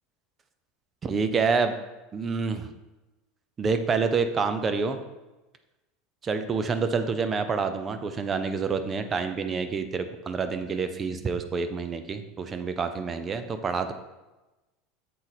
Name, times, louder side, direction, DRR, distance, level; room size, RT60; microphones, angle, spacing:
voice 1, 1.0-1.8 2.1-2.7 3.6-5.0 6.2-13.9, right 5 dB, 30° right, 9 dB, 0.6 m, -27 dB
7.5 x 3.9 x 4.1 m, 1.1 s
supercardioid pair, 105°, 0 cm